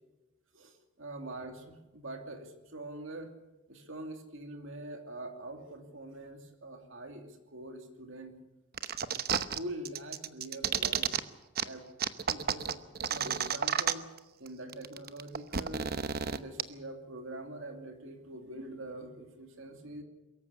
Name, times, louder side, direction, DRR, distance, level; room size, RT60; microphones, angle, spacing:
voice 1, 0.5-3.3 3.7-8.3 9.5-11.2 11.6-11.8 12.3-12.8 13.1-14.1 14.4-15.9 16.3-20.0, right 1 dB, 60° right, 5 dB, 2.7 m, -44 dB
sound 1, 8.8-9.6 9.9-11.2 11.6-11.7 12.0-14.2 14.5-14.6 14.7-16.6, right 7 dB, 45° right, 0.9 m, -31 dB
23.5 x 14.5 x 8.4 m, 1.0 s
head